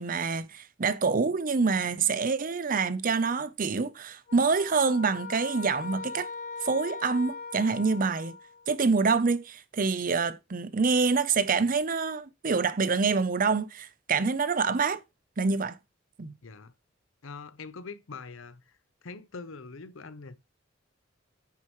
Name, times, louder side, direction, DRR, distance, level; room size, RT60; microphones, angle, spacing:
voice 1, 0.0-6.3 6.6-8.4 8.7-15.0 15.4-15.8 16.2-16.4, right 4 dB, 45° right, 0.6 m, -26 dB
sound 1, 4.3-8.7, left 4 dB, 40° left, 0.9 m, -40 dB
voice 2, 16.4-16.7 17.2-18.8 19.0-20.4, left 4 dB, 85° left, 0.8 m, -43 dB
9.4 x 6.7 x 3.1 m
head